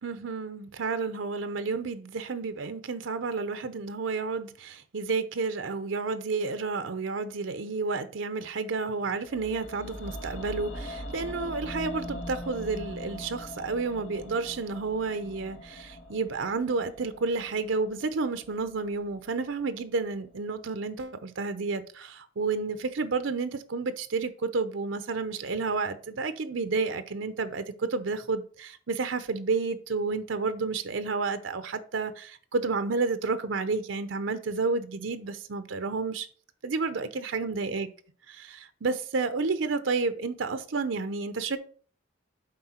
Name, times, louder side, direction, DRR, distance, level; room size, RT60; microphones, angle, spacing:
voice 1, 0.0-36.3 36.6-37.9 38.8-41.6, right 4 dB, 90° right, 0.7 m, -31 dB
sound 1, 9.3-19.4 19.7-19.8, left 1 dB, 75° left, 1.5 m, -41 dB
7.7 x 4.8 x 4.3 m
head